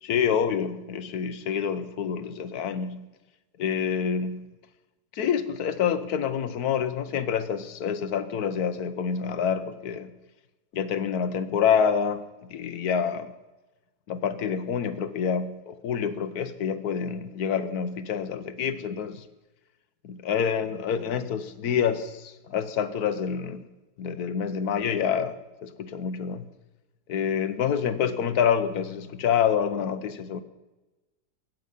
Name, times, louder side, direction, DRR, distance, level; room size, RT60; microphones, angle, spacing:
voice 1, 0.0-3.1 3.6-4.5 5.1-10.1 10.7-12.2 12.5-13.3 14.1-19.2 20.0-23.6 24.0-26.5 27.1-30.4, left 7 dB, 65° left, 1.4 m, -27 dB
22.0 x 9.3 x 5.5 m
omnidirectional pair, 1.8 m